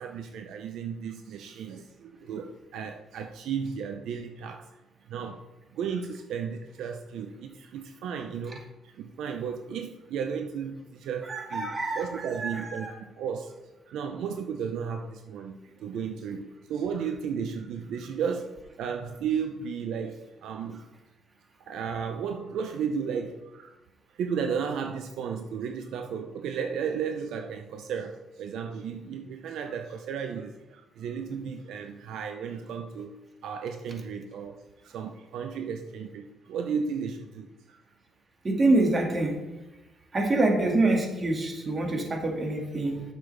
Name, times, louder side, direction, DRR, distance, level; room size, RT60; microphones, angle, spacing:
voice 1, 0.0-4.7 5.1-5.4 5.7-13.5 13.9-20.9 21.6-23.8 24.1-37.8, right 6 dB, 80° right, 5 dB, 0.6 m, -34 dB
voice 2, 11.3-12.9 38.4-39.3 40.1-43.0, right 2 dB, 35° right, 1 dB, 2.0 m, -26 dB
9.7 x 6.9 x 3.3 m, 1.0 s
cardioid pair, 90°, 0 cm